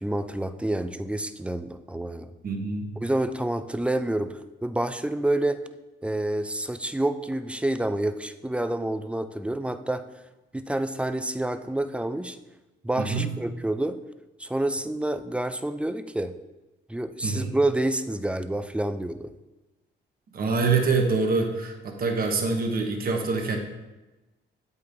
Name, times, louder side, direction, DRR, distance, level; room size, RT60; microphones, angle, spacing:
voice 1, 0.0-2.3 3.0-5.6 6.0-10.0 10.5-12.4 12.8-14.0 14.4-16.3 16.9-19.3, right 1 dB, 5° right, 10 dB, 0.3 m, -28 dB
voice 2, 2.4-3.0 13.0-13.3 17.2-17.6 20.3-23.6, right 4 dB, 50° right, 3 dB, 1.1 m, -25 dB
8.0 x 5.3 x 2.6 m, 1.1 s
cardioid pair, 90°, 20 cm